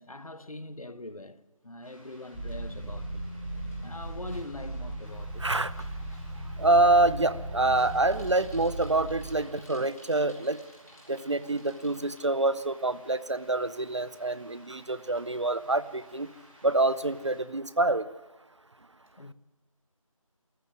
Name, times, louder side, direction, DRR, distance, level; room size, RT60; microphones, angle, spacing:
voice 1, 0.0-3.2 3.8-5.4 19.2-19.3, left 2 dB, 75° left, 1.1 m, -42 dB
sound 1, 1.8-17.4, right 1 dB, 20° right, 6.2 m, -58 dB
sound 2, 2.3-9.4, right 1 dB, ahead, 1.9 m, -37 dB
Bicycle, 2.8-12.2, left 1 dB, 30° left, 3.5 m, -57 dB
voice 2, 5.4-5.7 6.6-10.6 11.1-16.3 16.6-18.1, right 2 dB, 55° right, 0.7 m, -26 dB
24.0 x 14.0 x 8.0 m
figure-of-eight pair, 170°, 18 cm